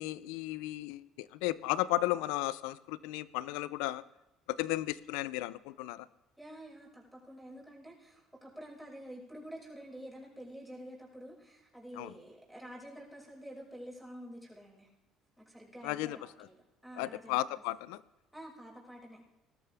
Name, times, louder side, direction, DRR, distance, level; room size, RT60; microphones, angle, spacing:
voice 1, 0.0-4.0 4.5-6.1 12.0-12.1 15.8-16.2 17.0-18.0, left 16 dB, 85° left, 18 dB, 0.5 m, -34 dB
voice 2, 6.4-14.9 15.4-16.6 16.8-17.4 18.3-19.2, equal, ahead, -4 dB, 6.1 m, -48 dB
19.5 x 13.0 x 3.5 m, 0.99 s
supercardioid pair, 90°, 0 cm